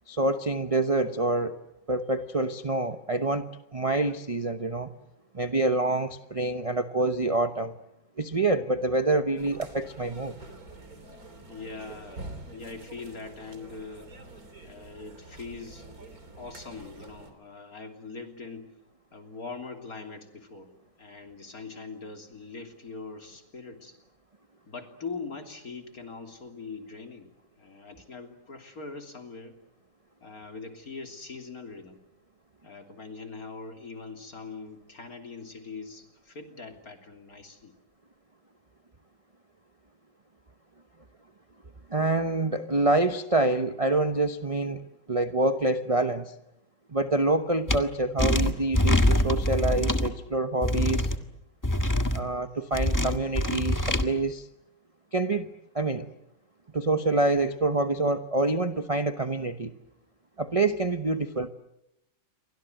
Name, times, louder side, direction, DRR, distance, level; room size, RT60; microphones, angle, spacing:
voice 1, 0.1-1.6 1.9-4.9 5.3-7.7 8.2-10.4 41.9-46.3 46.9-51.1 52.1-54.5 55.1-56.1 56.7-59.7 60.4-61.5, right 2 dB, 25° right, 8 dB, 0.7 m, -26 dB
sound 1, 9.4-17.3, right 2 dB, 45° right, 3.6 m, -46 dB
voice 2, 11.5-14.1 14.6-18.7 19.1-20.7 21.0-24.0 24.7-27.3 27.6-29.6 30.2-32.0 32.6-37.7, left 4 dB, 45° left, 5 dB, 3.6 m, -42 dB
sound 2, 47.7-47.8 48.2-50.1 50.6-51.2 51.6-52.2 52.7-54.0, left 1 dB, 10° left, 1.3 m, -24 dB
29.5 x 24.0 x 7.9 m, 0.85 s
omnidirectional pair, 2.2 m